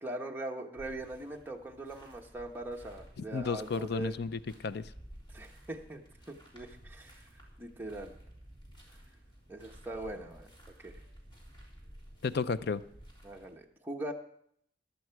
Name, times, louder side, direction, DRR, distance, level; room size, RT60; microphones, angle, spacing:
voice 1, 0.0-4.2 5.3-6.0 6.3-7.1 7.6-8.1 9.5-10.5 10.8-11.0 13.2-14.1, right 1 dB, 10° right, 1 dB, 1.1 m, -41 dB
sound 1, 0.8-13.5, equal, 25° left, 3.4 m, -54 dB
voice 2, 3.3-4.8 12.2-12.8, left 4 dB, 60° left, 15 dB, 0.5 m, -33 dB
14.5 x 11.5 x 4.6 m, 0.69 s
head